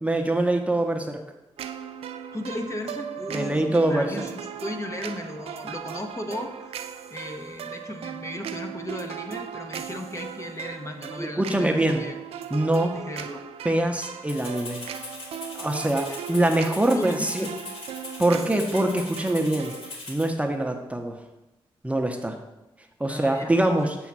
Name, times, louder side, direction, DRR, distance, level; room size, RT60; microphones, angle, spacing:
voice 1, 0.0-1.2 3.3-4.1 11.2-12.0 12.5-13.0 13.6-14.9 15.5-17.5 18.2-19.7 20.1-21.2 21.8-22.4 23.0-24.0, right 1 dB, 15° right, 4 dB, 0.7 m, -24 dB
sound 1, 1.6-19.9, right 8 dB, 85° right, 0.4 m, -38 dB
voice 2, 2.3-6.8 7.1-12.2 12.9-13.4 16.1-16.2 16.9-17.5 23.1-23.5, left 1 dB, 30° left, 4 dB, 0.8 m, -35 dB
Rattle (instrument), 14.3-20.3, left 2 dB, 70° left, 1.7 m, -40 dB
7.2 x 3.1 x 6.0 m, 0.99 s
cardioid pair, 60°, 10 cm